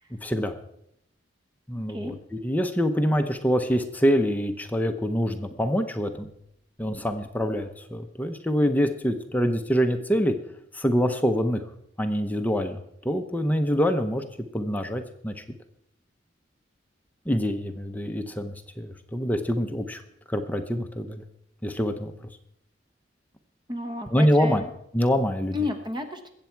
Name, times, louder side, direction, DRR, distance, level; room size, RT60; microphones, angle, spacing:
voice 1, 0.2-0.5 1.7-6.3 6.8-10.3 10.7-11.6 12.0-14.2 14.5-15.4 17.3-20.0 20.3-21.2 21.6-22.1 24.1-24.6 24.9-25.5, equal, 10° left, 6 dB, 0.8 m, -25 dB
voice 2, 23.7-24.7 25.5-26.3, left 3 dB, 25° right, 6 dB, 1.2 m, -31 dB
21.5 x 8.2 x 4.6 m, 0.76 s
head